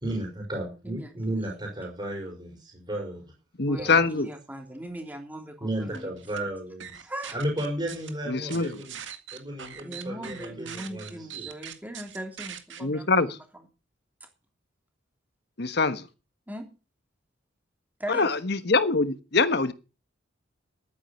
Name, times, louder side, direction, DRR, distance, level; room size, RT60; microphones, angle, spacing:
voice 1, 0.0-3.3 3.8-4.1 5.6-9.0 9.3-11.5, right 1 dB, 25° right, 4.7 m, -34 dB
voice 2, 0.8-1.4 3.7-6.1 7.0-7.4 9.8-13.4 14.2-14.3 16.5-16.6 18.0-18.3, right 1 dB, 10° right, 3.1 m, -39 dB
voice 3, 3.6-4.3 8.3-8.8 12.8-13.3 15.6-16.1 18.1-19.7, left 3 dB, 60° left, 1.2 m, -24 dB
sound 1, 5.9-6.4 6.8-8.1 8.5-12.8, right 9 dB, 75° right, 2.0 m, -41 dB
12.5 x 9.6 x 6.8 m
head